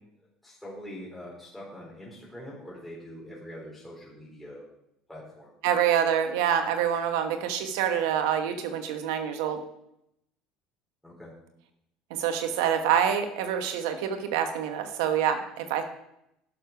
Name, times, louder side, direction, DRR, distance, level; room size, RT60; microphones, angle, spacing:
voice 1, 0.4-4.6 5.1-5.5 11.0-11.3, equal, 5° left, -6 dB, 4.1 m, -43 dB
voice 2, 5.6-9.6 12.1-15.8, right 9 dB, 80° right, 7 dB, 1.2 m, -26 dB
11.5 x 6.7 x 5.8 m, 0.79 s
supercardioid pair, 85°, 2 cm